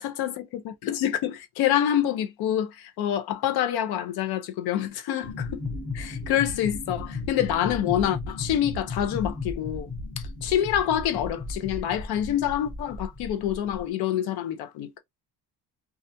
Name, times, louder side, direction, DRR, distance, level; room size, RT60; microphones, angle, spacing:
voice 1, 0.0-5.6 5.9-9.9 10.4-15.0, left 11 dB, 75° left, 0.7 m, -27 dB
sound 1, 5.2-13.8, left 3 dB, 5° left, 0.8 m, -35 dB
2.4 x 2.2 x 2.6 m
cardioid pair, 115°, 38 cm